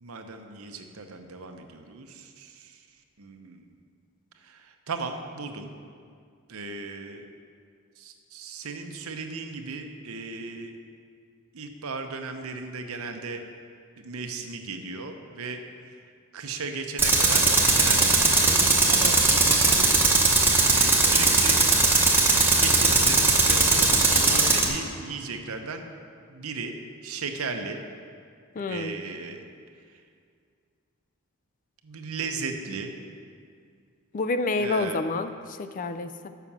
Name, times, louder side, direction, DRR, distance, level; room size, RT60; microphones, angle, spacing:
voice 1, 0.0-2.7 3.2-3.6 4.5-4.6 4.9-5.7 6.5-7.2 8.0-10.7 11.5-13.4 14.0-15.6 16.3-19.9 20.6-21.6 22.5-25.8 26.3-26.8 27.0-27.8 28.7-29.4 31.8-32.9 34.6-35.0, right 4 dB, 85° right, 5 dB, 0.8 m, -36 dB
Tools, 17.0-24.7, right 3 dB, 10° right, 0.9 m, -20 dB
voice 2, 28.6-29.0 34.1-36.3, left 3 dB, 40° left, 10 dB, 0.3 m, -28 dB
6.9 x 5.8 x 7.2 m, 2.2 s
head